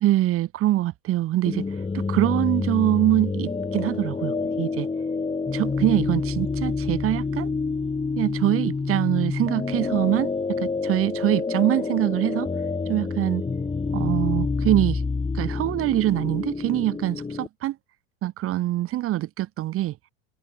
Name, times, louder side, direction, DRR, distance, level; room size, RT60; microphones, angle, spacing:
voice 1, 0.0-1.6 1.9-4.9 5.5-7.5 8.2-12.5 12.9-13.4 13.9-15.0 15.3-17.8 18.2-20.0, right 15 dB, 35° right, 0.8 m, -24 dB
sound 1, 1.5-17.5, left 4 dB, 15° left, 2.7 m, -28 dB
hypercardioid pair, 100°, 41 cm